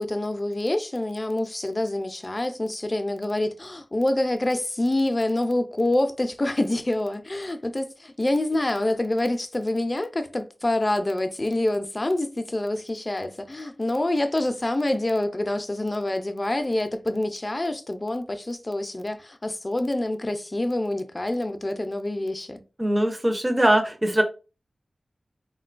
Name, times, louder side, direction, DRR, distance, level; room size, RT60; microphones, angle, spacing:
voice 1, 0.0-22.6, left 1 dB, 30° left, 0.4 m, -26 dB
voice 2, 22.8-24.2, right 1 dB, 20° right, 0.5 m, -21 dB
3.5 x 2.2 x 2.4 m
wide cardioid pair, 70°, 0 cm